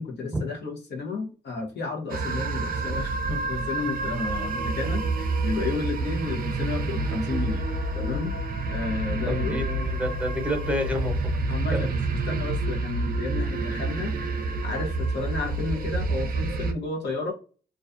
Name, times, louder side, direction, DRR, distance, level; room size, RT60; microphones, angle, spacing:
voice 1, 0.0-7.6 7.9-8.3 8.7-9.6 11.5-14.1 14.6-17.3, left 3 dB, 65° left, 0 dB, 0.8 m, -32 dB
sound 1, 2.1-16.7, right 3 dB, 50° right, 0.5 m, -28 dB
voice 2, 9.2-11.2 11.7-11.9, equal, 5° right, 3 dB, 0.9 m, -29 dB
2.4 x 2.2 x 2.5 m, 0.37 s
cardioid pair, 65°, 19 cm